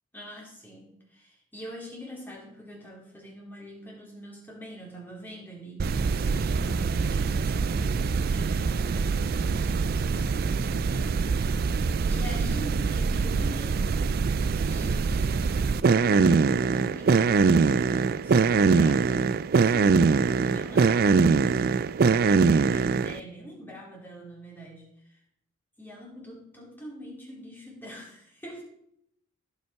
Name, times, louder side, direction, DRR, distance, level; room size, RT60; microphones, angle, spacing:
voice 1, 0.1-11.6 12.1-13.8 14.5-25.2 25.8-28.6, equal, 10° left, -3 dB, 3.0 m, -44 dB
sound 1, 5.8-23.2, right 4 dB, 45° right, 0.3 m, -23 dB
15.5 x 5.5 x 4.7 m, 0.76 s
head